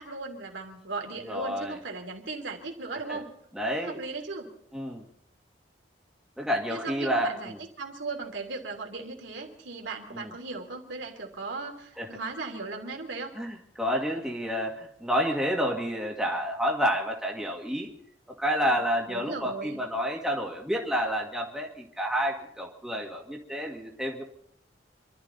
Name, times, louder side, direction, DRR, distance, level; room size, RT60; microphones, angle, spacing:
voice 1, 0.0-3.3 3.7-4.5 6.7-13.3 18.6-18.8 19.1-19.8, right 3 dB, 85° right, 1 dB, 3.2 m, -37 dB
voice 2, 1.3-1.8 3.1-3.2 3.5-4.0 4.7-5.0 6.4-7.6 10.1-10.3 12.0-12.1 13.4-17.9 18.4-24.2, equal, 5° right, -1 dB, 2.2 m, -29 dB
26.5 x 12.5 x 4.1 m, 0.67 s
head